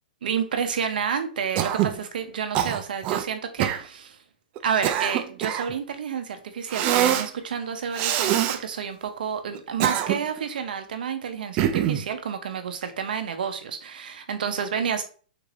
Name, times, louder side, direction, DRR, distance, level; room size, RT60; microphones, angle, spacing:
voice 1, 0.2-4.2 4.6-15.0, right 7 dB, 75° right, 7 dB, 0.6 m, -29 dB
Cough, 1.6-2.0 2.5-3.2 3.6-3.8 4.6-5.7 6.7-7.3 7.9-8.6 9.6-10.4 11.6-12.1, right 11 dB, 35° right, 0.3 m, -24 dB
3.7 x 3.3 x 2.4 m, 0.41 s
hypercardioid pair, 135°, 5 cm